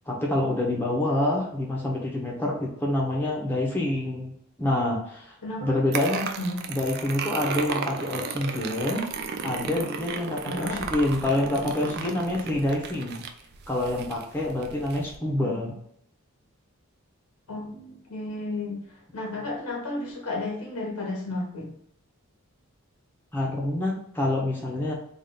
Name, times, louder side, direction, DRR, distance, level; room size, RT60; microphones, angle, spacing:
voice 1, 0.1-4.3 4.6-5.3 5.6-6.3 6.7-9.1 9.4-13.2 13.7-15.7 23.3-24.9, left 1 dB, 10° left, -3 dB, 0.8 m, -27 dB
voice 2, 5.4-5.7 6.4-6.6 10.4-10.9 15.4-15.5 17.5-18.8 19.1-21.7, left 2 dB, 90° left, -1 dB, 1.4 m, -33 dB
sound 1, 5.9-15.2, right 5 dB, 45° right, 0.4 m, -34 dB
3.5 x 2.5 x 3.9 m, 0.71 s
head